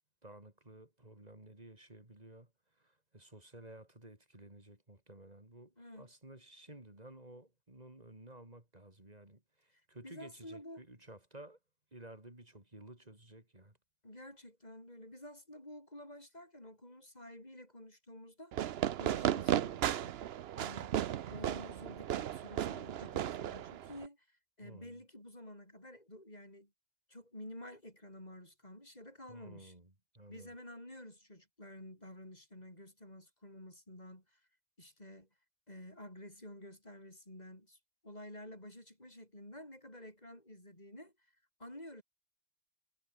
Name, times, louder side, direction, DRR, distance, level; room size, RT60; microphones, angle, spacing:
voice 1, 0.2-11.6 11.9-13.8 24.6-25.0 29.3-30.5, right 1 dB, 35° right, 4.5 m, -54 dB
voice 2, 5.8-6.1 10.0-10.8 14.0-21.0 21.3-26.7 27.1-29.7 30.3-34.4 34.8-35.3 35.7-41.1 41.6-42.0, left 1 dB, 40° left, 7.5 m, -51 dB
Fireworks, 18.5-24.1, right 11 dB, 70° right, 0.9 m, -35 dB
omnidirectional pair, 1.1 m